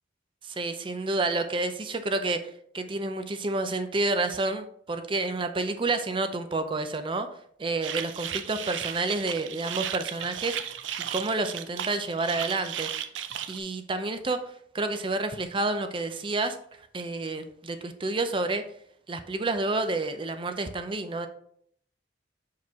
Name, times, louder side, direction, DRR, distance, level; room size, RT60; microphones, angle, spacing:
voice 1, 0.4-2.4 2.7-7.3 7.6-10.6 11.1-12.9 13.5-14.4 14.7-16.6 16.9-18.6 19.1-21.3, right 2 dB, 30° right, 8 dB, 0.5 m, -29 dB
sound 1, 7.8-13.6, right 9 dB, 85° right, 0.5 m, -35 dB
6.1 x 4.7 x 3.5 m, 0.65 s
head